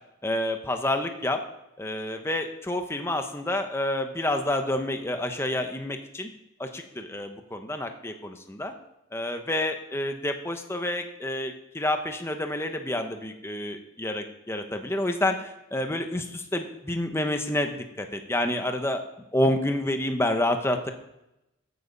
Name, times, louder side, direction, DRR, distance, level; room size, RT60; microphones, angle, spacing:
voice 1, 0.2-1.4 1.8-6.3 6.6-8.7 9.1-19.0 19.3-20.9, left 1 dB, 15° left, 6 dB, 0.9 m, -28 dB
14.5 x 8.2 x 5.3 m, 0.87 s
head